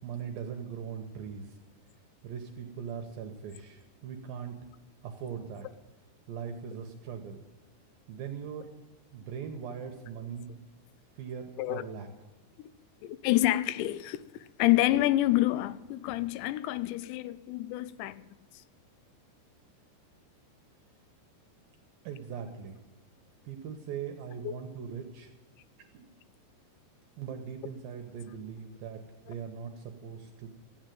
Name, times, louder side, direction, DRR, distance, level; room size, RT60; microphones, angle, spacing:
voice 1, 0.0-1.5 2.2-4.6 5.0-5.7 6.3-7.4 8.1-8.7 9.1-10.5 11.2-12.1 22.0-22.8 23.4-25.3 25.9-26.0 27.2-30.5, right 7 dB, 75° right, 2.2 m, -40 dB
voice 2, 13.0-14.2 14.6-18.2 24.4-24.6, left 16 dB, 85° left, 2.9 m, -27 dB
14.0 x 8.9 x 9.0 m
omnidirectional pair, 5.1 m